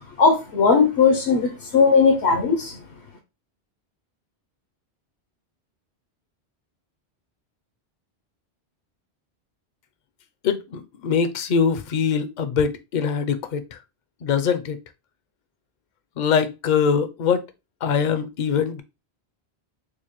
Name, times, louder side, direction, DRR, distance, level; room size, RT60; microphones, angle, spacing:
voice 1, 0.2-2.8, left 5 dB, 80° left, 1.0 m, -18 dB
voice 2, 10.4-13.8 14.2-14.8 16.2-17.5 17.8-18.8, left 6 dB, 55° left, 0.6 m, -23 dB
4.8 x 2.1 x 3.0 m
omnidirectional pair, 1.1 m